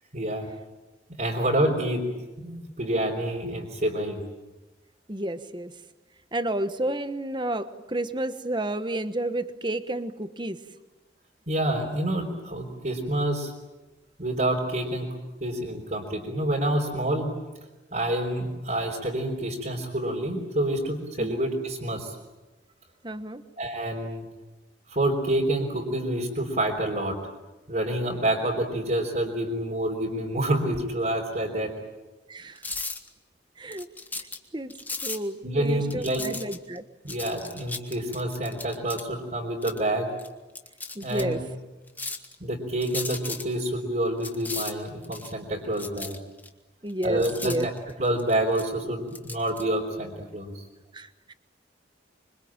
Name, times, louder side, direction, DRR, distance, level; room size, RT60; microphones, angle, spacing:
voice 1, 0.1-0.5 1.1-2.0 2.4-4.2 11.5-13.5 14.2-15.1 15.4-17.3 17.9-22.1 23.6-24.2 24.9-27.2 27.7-31.7 35.4-36.3 37.0-40.1 41.0-41.4 42.4-46.2 47.0-47.7 48.0-50.6, right 1 dB, 45° right, -4 dB, 4.0 m, -28 dB
voice 2, 5.1-5.7 6.3-10.6 21.2-21.4 23.0-23.4 32.3-32.6 33.6-33.9 34.2-34.3 34.5-34.7 35.0-36.8 40.9-41.4 46.8-47.7 50.9-51.3, right 1 dB, 25° right, 10 dB, 1.2 m, -31 dB
sound 1, 32.6-33.1 33.7-34.4 34.7-35.2 35.8-36.8 37.1-39.0 39.6-39.8 40.2-40.3 40.5-41.2 41.9-42.3 42.8-43.4 44.2-45.3 45.8-46.5 46.9-48.7 49.1-49.6, left 3 dB, 10° left, 1.6 m, -36 dB
26.0 x 25.0 x 8.9 m, 1.1 s
head